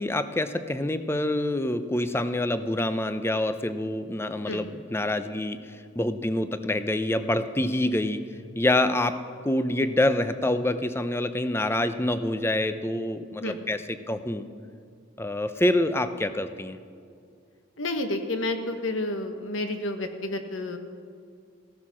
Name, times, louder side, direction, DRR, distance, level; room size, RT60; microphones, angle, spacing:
voice 1, 0.0-5.6 6.0-8.2 8.6-9.2 9.4-14.4 15.2-16.8, left 1 dB, 15° left, 11 dB, 0.6 m, -26 dB
voice 2, 17.8-20.8, left 2 dB, 85° left, 6 dB, 1.4 m, -30 dB
16.0 x 13.0 x 6.2 m, 2.3 s
head